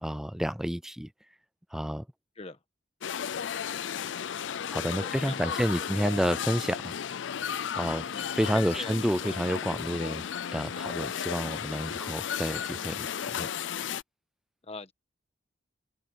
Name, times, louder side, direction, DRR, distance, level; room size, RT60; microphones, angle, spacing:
voice 1, 0.0-1.1 1.7-2.1 4.7-7.1 7.7-13.5, equal, 5° right, 0.5 m, -30 dB
sound 1, 3.0-14.0, left 8 dB, 70° left, 0.5 m, -34 dB
voice 2, 5.0-6.1 7.9-8.3 8.5-9.4 14.6-14.9, left 3 dB, 35° left, 1.4 m, -43 dB
head